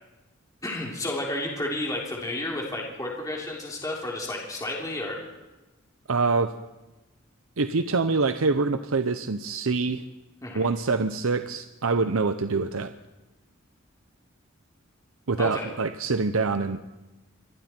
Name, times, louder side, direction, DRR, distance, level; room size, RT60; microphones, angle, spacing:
voice 1, 0.6-5.2 10.4-10.6 15.4-15.7, left 1 dB, 15° left, -2 dB, 3.3 m, -31 dB
voice 2, 6.1-6.5 7.6-10.0 10.5-12.9 15.3-16.8, right 4 dB, 90° right, 10 dB, 0.8 m, -25 dB
27.0 x 24.0 x 4.5 m, 1.1 s
head